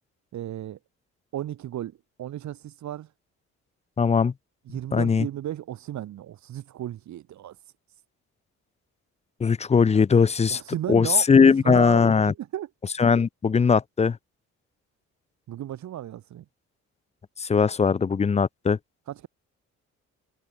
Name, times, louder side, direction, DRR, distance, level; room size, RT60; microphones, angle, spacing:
voice 1, 0.3-0.8 1.3-3.1 4.6-7.6 10.5-12.7 15.5-16.4 19.1-19.3, right 12 dB, 70° right, 1.5 m, -34 dB
voice 2, 4.0-4.3 4.9-5.3 9.4-10.6 10.9-12.3 13.0-14.2 17.4-18.8, left 5 dB, 20° left, 0.5 m, -20 dB
cardioid pair, 90°, 30 cm